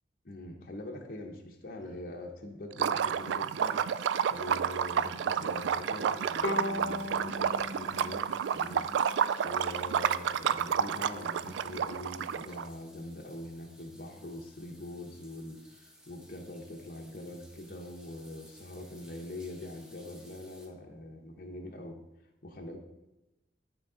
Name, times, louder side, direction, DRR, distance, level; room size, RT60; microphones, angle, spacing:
voice 1, 0.2-3.9 4.3-8.9 9.4-22.0 22.4-22.8, left 1 dB, 50° left, 1 dB, 0.8 m, -43 dB
Liquid, 2.7-12.6, right 8 dB, 90° right, 0.3 m, -30 dB
sound 1, 3.1-20.7, equal, 5° right, 0.9 m, -59 dB
Bowed string instrument, 6.4-9.8, left 2 dB, 85° left, 0.8 m, -38 dB
10.0 x 4.6 x 3.8 m, 1.0 s
head